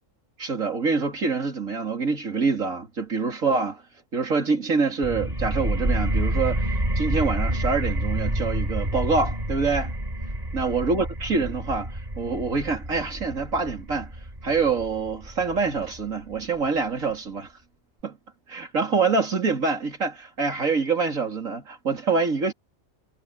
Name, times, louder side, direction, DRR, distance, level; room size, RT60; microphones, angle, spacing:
voice 1, 0.4-3.8 4.1-9.9 10.5-14.1 14.4-17.5 18.0-18.2 18.5-22.5, right 4 dB, 90° right, 3.7 m, -25 dB
sound 1, 5.0-16.4, right 1 dB, 30° right, 6.9 m, -28 dB
omnidirectional pair, 1.3 m